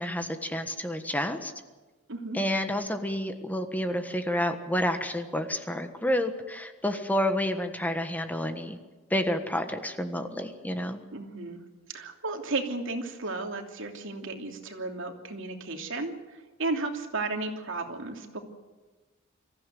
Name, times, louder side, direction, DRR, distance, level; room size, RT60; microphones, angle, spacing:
voice 1, 0.0-1.5 2.3-8.8 9.1-11.0, left 1 dB, 10° left, 7 dB, 1.4 m, -29 dB
voice 2, 11.1-11.6 11.9-18.4, right 3 dB, 65° right, 3 dB, 2.9 m, -34 dB
25.0 x 15.0 x 9.3 m, 1.2 s
head